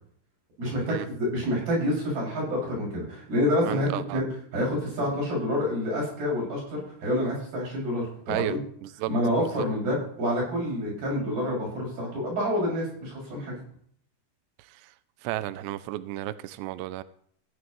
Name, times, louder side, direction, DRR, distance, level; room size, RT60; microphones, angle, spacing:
voice 1, 0.6-4.3 4.5-8.6 9.1-13.5, left 1 dB, 50° right, -5 dB, 8.3 m, -28 dB
voice 2, 3.6-4.2 8.3-8.6 8.8-9.1 9.4-9.7 15.2-17.0, right 15 dB, 85° right, 14 dB, 2.4 m, -32 dB
16.5 x 11.0 x 3.2 m, 0.62 s
omnidirectional pair, 5.5 m